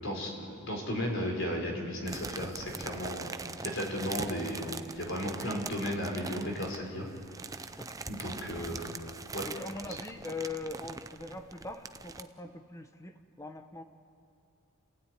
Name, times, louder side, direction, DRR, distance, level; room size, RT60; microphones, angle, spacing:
voice 1, 0.6-3.3 3.6-7.1 8.1-8.9 9.3-9.5, equal, 55° left, 2 dB, 4.7 m, -34 dB
sound 1, 2.1-12.2, right 4 dB, 15° right, 0.5 m, -42 dB
voice 2, 9.4-13.8, left 3 dB, 15° left, 7 dB, 1.1 m, -41 dB
29.0 x 16.5 x 9.5 m, 2.4 s
head